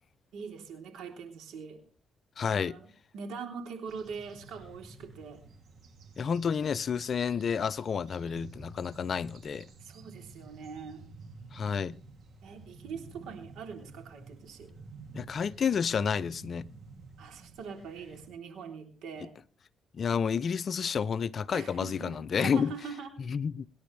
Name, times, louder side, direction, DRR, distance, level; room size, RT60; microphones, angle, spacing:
voice 1, 0.3-1.8 2.4-5.4 9.8-11.1 12.4-14.7 17.2-19.3 21.5-23.1, right 5 dB, 85° right, 3.5 m, -43 dB
voice 2, 2.4-2.7 6.2-9.7 11.5-12.0 15.1-16.7 19.9-22.7 23.3-23.7, left 6 dB, 50° left, 0.6 m, -30 dB
sound 1, 3.9-18.3, right 3 dB, 60° right, 2.7 m, -51 dB
24.5 x 10.5 x 3.3 m
cardioid pair, 90°, 0 cm